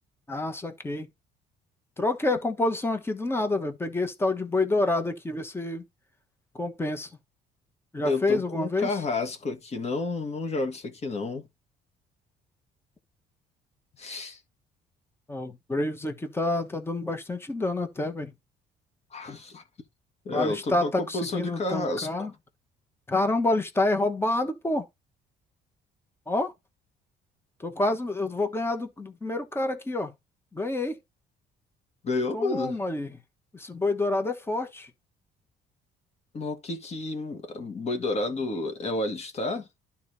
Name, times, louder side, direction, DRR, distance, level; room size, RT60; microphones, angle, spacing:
voice 1, 0.3-1.1 2.0-5.9 6.5-7.1 7.9-9.0 15.3-18.3 20.3-22.3 23.1-24.9 26.3-26.5 27.6-30.1 30.5-31.0 32.3-33.2 33.5-34.9, left 2 dB, 15° left, 1.2 m, -28 dB
voice 2, 8.0-11.5 14.0-14.4 19.1-19.6 20.3-22.1 32.0-32.8 36.3-39.7, left 2 dB, 40° left, 1.7 m, -30 dB
12.0 x 4.2 x 2.7 m
cardioid pair, 110°, 17 cm